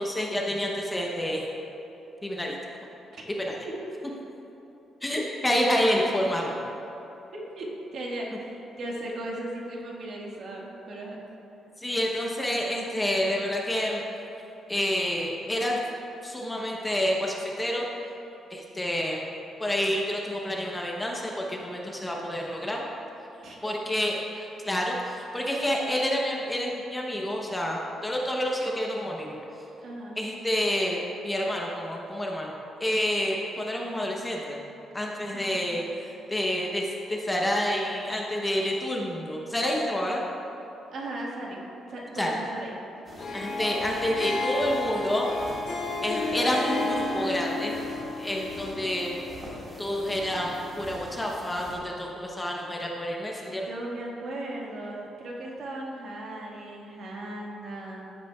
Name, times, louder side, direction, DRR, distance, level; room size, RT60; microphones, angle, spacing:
voice 1, 0.0-1.4 2.2-2.6 3.4-3.6 5.0-6.6 11.8-14.0 14.7-15.8 16.2-17.9 18.5-19.3 19.6-22.9 23.6-29.4 30.2-34.6 34.9-40.2 42.1-42.4 43.3-45.3 46.0-47.7 48.2-49.2 49.8-53.7, equal, 10° left, -1 dB, 0.7 m, -28 dB
voice 2, 7.3-11.2 23.4-24.0 29.8-30.2 35.3-35.7 40.9-41.6 41.9-42.8 53.6-58.0, right 1 dB, 55° right, -2 dB, 1.5 m, -37 dB
sound 1, 43.0-51.8, right 1 dB, 25° right, 1.8 m, -46 dB
Harp, 43.1-51.4, left 2 dB, 55° left, 1.7 m, -33 dB
15.0 x 8.1 x 2.3 m, 2.9 s
cardioid pair, 180°, 0 cm